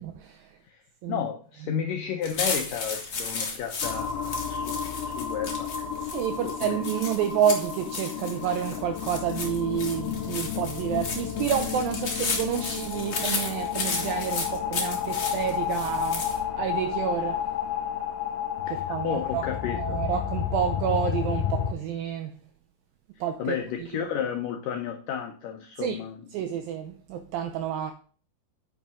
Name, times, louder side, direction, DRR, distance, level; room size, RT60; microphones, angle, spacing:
voice 1, 0.0-0.6 1.0-1.2 6.0-17.5 18.7-19.5 19.7-22.4 23.2-23.6 25.8-26.0 26.3-27.9, right 9 dB, 90° right, 2.0 m, -29 dB
voice 2, 1.1-6.8 18.7-20.0 23.4-26.2, left 8 dB, 90° left, 1.9 m, -33 dB
sound 1, 2.2-16.4, left 4 dB, 55° left, 1.2 m, -34 dB
sound 2, 3.8-21.7, left 9 dB, 75° left, 2.6 m, -31 dB
9.2 x 6.0 x 3.6 m
omnidirectional pair, 4.9 m